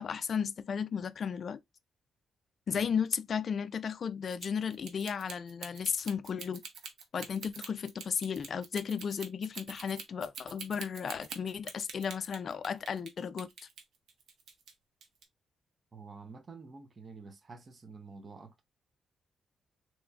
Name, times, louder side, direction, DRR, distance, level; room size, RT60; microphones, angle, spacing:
voice 1, 0.0-1.6 2.7-6.6 7.1-13.5, left 7 dB, 50° left, 0.3 m, -34 dB
sound 1, 4.3-13.1 13.4-14.7 15.0-15.2, right 5 dB, 75° right, 0.9 m, -45 dB
voice 2, 15.9-18.6, right 4 dB, 35° right, 0.6 m, -49 dB
3.8 x 2.9 x 2.3 m
cardioid pair, 110°, 0 cm